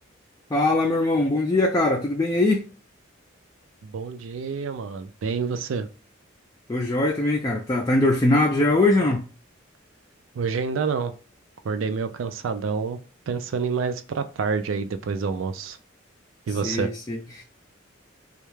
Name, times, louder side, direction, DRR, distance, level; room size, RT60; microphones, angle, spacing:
voice 1, 0.5-2.6 6.7-9.3 16.6-17.4, left 2 dB, 20° left, 0.3 m, -21 dB
voice 2, 3.8-5.9 10.3-11.1 11.6-13.0 13.3-15.8 16.5-16.9, right 5 dB, 75° right, 0.4 m, -28 dB
2.3 x 2.1 x 3.0 m
head